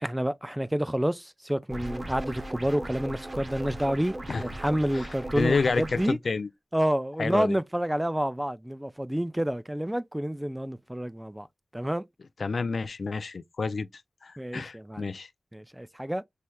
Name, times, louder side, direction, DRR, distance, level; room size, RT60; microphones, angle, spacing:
voice 1, 0.0-6.2 6.7-11.5 11.7-12.0 14.4-15.1 15.5-16.2, equal, 10° right, 0.3 m, -29 dB
sound 1, 1.7-6.1, right 1 dB, 30° right, 0.8 m, -38 dB
voice 2, 5.3-6.5 7.2-7.6 12.4-13.9 14.2-15.3, left 4 dB, 65° left, 0.4 m, -29 dB
5.6 x 3.2 x 2.3 m
wide cardioid pair, 95°, 0 cm